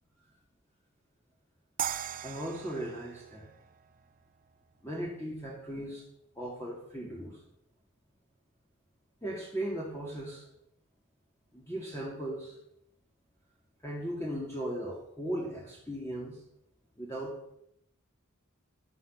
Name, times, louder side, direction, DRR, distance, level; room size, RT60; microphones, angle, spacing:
sound 1, 1.8-4.9, right 9 dB, 40° right, 0.5 m, -39 dB
voice 1, 2.2-3.5 4.8-6.1 6.4-7.4 9.2-10.5 11.5-12.6 13.8-16.4 17.0-17.4, right 1 dB, 15° left, -4 dB, 2.2 m, -37 dB
12.0 x 7.7 x 6.7 m, 0.77 s
head